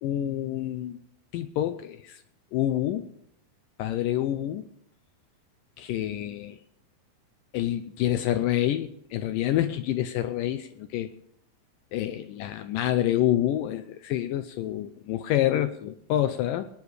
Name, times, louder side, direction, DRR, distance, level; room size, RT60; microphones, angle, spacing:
voice 1, 0.0-1.0 1.3-2.2 2.5-3.1 3.8-4.6 5.8-6.6 7.5-11.1 11.9-16.7, left 12 dB, 80° left, 11 dB, 2.1 m, -27 dB
21.5 x 10.0 x 4.9 m, 0.74 s
omnidirectional pair, 4.3 m